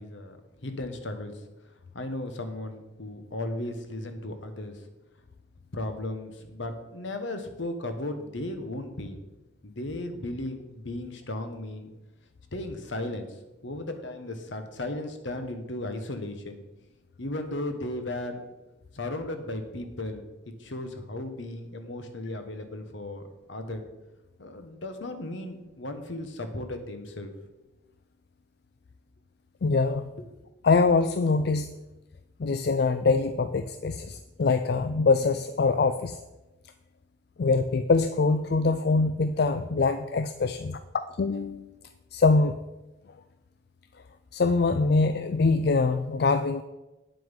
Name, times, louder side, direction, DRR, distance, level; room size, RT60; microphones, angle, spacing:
voice 1, 0.0-1.3 1.9-4.8 5.7-9.2 9.6-11.9 12.5-13.4 13.6-16.6 17.2-18.4 18.9-23.9 24.4-27.3, left 1 dB, 70° left, 7 dB, 1.2 m, -35 dB
voice 2, 29.6-30.1 30.6-31.7 32.4-36.2 37.4-40.8 41.2-41.7 42.1-42.6 44.3-46.6, left 4 dB, 55° left, 10 dB, 0.4 m, -24 dB
9.3 x 7.5 x 5.2 m, 1.0 s
head